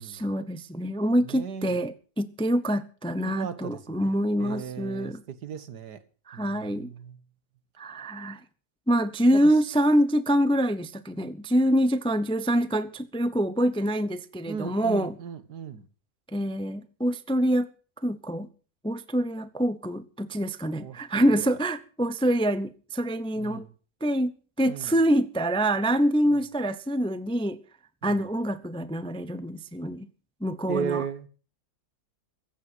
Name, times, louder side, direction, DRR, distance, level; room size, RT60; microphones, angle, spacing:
voice 1, 0.0-5.2 6.3-6.9 7.8-8.4 8.9-15.2 16.3-17.7 18.0-18.5 18.8-23.6 24.0-24.3 24.6-27.6 28.0-30.1 30.4-31.0, equal, 5° left, 0.4 m, -25 dB
voice 2, 1.2-1.8 3.2-6.0 6.3-7.2 9.3-9.5 14.5-15.9 20.8-21.6 23.4-23.7 24.7-25.0 28.0-28.3 30.7-31.3, right 7 dB, 90° right, 1.9 m, -36 dB
15.0 x 9.0 x 7.8 m
omnidirectional pair, 1.7 m